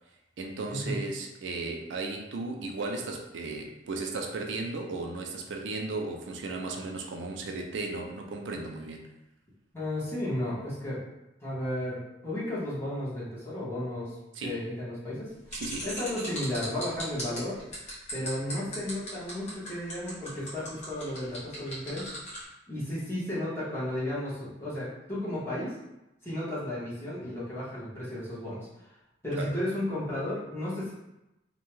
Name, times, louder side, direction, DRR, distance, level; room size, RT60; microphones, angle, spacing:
voice 1, 0.4-9.1 14.4-14.6 15.5-15.9 29.4-29.5, right 3 dB, 75° right, 2 dB, 0.4 m, -35 dB
voice 2, 9.7-11.0 11.4-17.6 18.1-22.1 22.7-25.8 26.2-28.7 29.2-30.9, left 1 dB, 15° left, -9 dB, 1.0 m, -34 dB
sound 1, 15.5-22.4, equal, 40° left, 1.0 m, -39 dB
2.6 x 2.2 x 3.1 m, 0.92 s
head